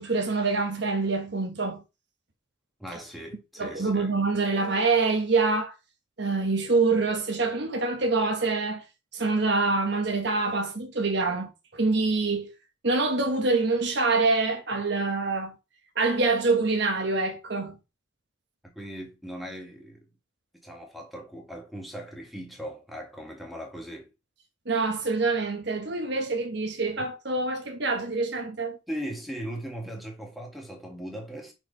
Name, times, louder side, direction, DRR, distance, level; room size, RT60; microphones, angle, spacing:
voice 1, 0.0-1.8 3.6-5.7 6.2-8.8 9.1-12.5 12.8-15.5 16.0-17.7 24.7-28.8, right 3 dB, 55° right, 1.2 m, -25 dB
voice 2, 2.8-4.1 18.6-20.1 20.6-24.1 28.9-31.5, equal, ahead, 1.8 m, -39 dB
5.8 x 4.6 x 5.4 m
head